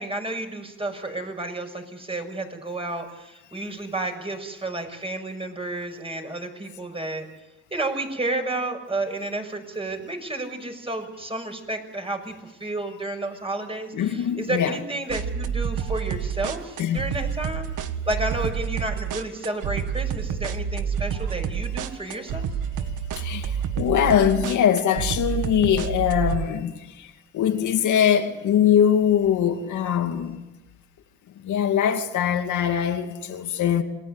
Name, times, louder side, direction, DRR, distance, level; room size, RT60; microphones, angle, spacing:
voice 1, 0.0-7.3 7.7-17.7 18.1-22.5, right 2 dB, 20° right, 6.4 m, -31 dB
voice 2, 13.9-14.8 16.8-17.0 23.2-30.4 31.4-33.8, left 9 dB, 75° left, 2.5 m, -22 dB
sound 1, 15.1-26.4, right 7 dB, 85° right, 1.8 m, -29 dB
27.5 x 20.5 x 8.1 m
cardioid pair, 90°, 30 cm